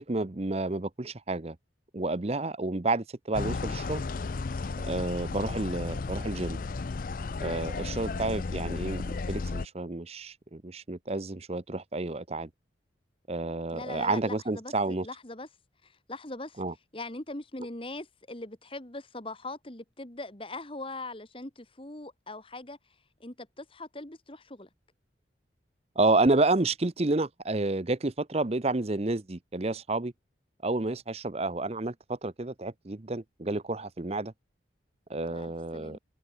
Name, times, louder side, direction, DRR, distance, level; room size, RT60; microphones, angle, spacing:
voice 1, 0.0-1.6 1.9-4.0 4.8-6.6 7.4-12.5 13.3-15.1 16.6-16.7 26.0-30.1 30.6-34.3 35.1-36.0, right 2 dB, 35° right, 0.8 m, -30 dB
sound 1, 3.3-9.7, left 3 dB, 45° left, 0.5 m, -34 dB
voice 2, 13.7-15.5 15.8-16.6 16.9-22.8 23.2-24.7 35.3-36.0, left 2 dB, 30° left, 1.8 m, -41 dB
open air
head